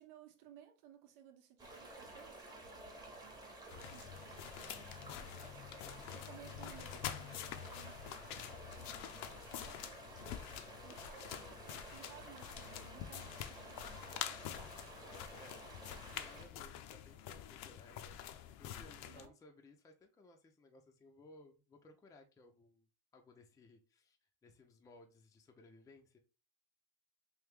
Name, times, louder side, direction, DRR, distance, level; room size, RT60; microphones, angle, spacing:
voice 1, 0.0-5.3 6.1-10.0 10.8-14.6 18.8-19.3, right 8 dB, 85° right, 0.9 m, -60 dB
sound 1, 1.6-16.4, right 1 dB, 10° right, 0.8 m, -53 dB
sound 2, 3.7-19.3, left 11 dB, 65° left, 0.5 m, -47 dB
voice 2, 5.8-6.1 15.0-22.9 23.1-26.2, left 2 dB, 10° left, 0.4 m, -61 dB
3.3 x 2.7 x 3.4 m
cardioid pair, 135°, 36 cm